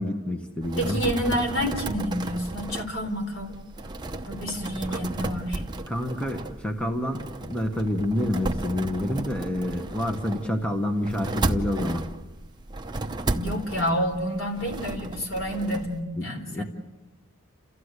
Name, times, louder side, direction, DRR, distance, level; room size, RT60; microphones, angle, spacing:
voice 1, 0.0-1.0 4.9-5.0 5.9-12.0 16.2-16.6, left 1 dB, 5° left, 3 dB, 1.3 m, -28 dB
sound 1, 0.6-16.0, right 2 dB, 20° right, 0.8 m, -34 dB
voice 2, 0.8-3.6 4.3-5.6 13.3-16.6, equal, 60° left, 4 dB, 4.0 m, -29 dB
29.0 x 14.5 x 8.2 m, 1.2 s
head